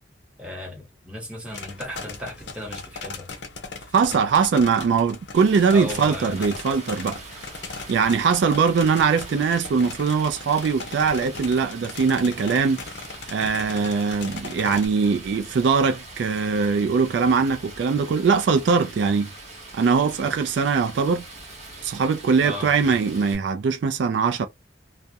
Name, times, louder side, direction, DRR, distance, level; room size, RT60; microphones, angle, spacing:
voice 1, 0.4-3.3 4.1-4.2 5.7-6.5 22.4-22.9, left 1 dB, 5° right, 0.9 m, -35 dB
sound 1, 1.5-14.9, left 4 dB, 65° left, 0.6 m, -38 dB
voice 2, 3.9-7.2 7.9-12.8 13.3-19.3 19.7-21.3 21.8-24.5, right 5 dB, 70° right, 0.3 m, -21 dB
Stream, 5.3-23.3, right 2 dB, 35° right, 0.7 m, -42 dB
2.3 x 2.0 x 2.6 m
head